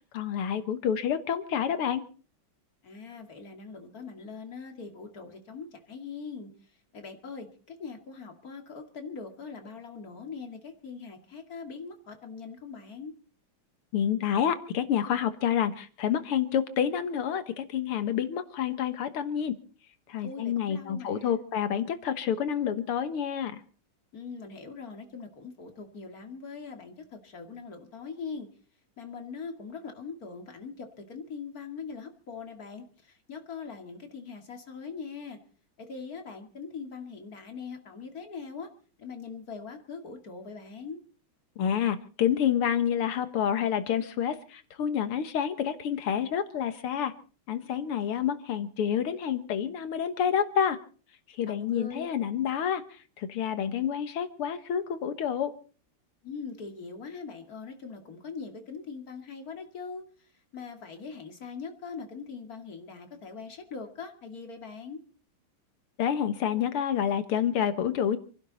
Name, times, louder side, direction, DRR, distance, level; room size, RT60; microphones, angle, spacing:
voice 1, 0.1-2.0 13.9-19.6 20.1-23.6 41.6-47.1 47.5-50.8 51.3-55.5 66.0-68.2, left 8 dB, 85° left, 11 dB, 2.2 m, -28 dB
voice 2, 2.8-13.1 20.2-21.4 24.1-28.5 29.0-35.4 35.8-38.7 39.0-41.0 51.4-52.1 56.2-65.0, left 5 dB, 40° left, 5 dB, 2.8 m, -42 dB
28.0 x 11.5 x 4.1 m, 0.40 s
omnidirectional pair, 2.4 m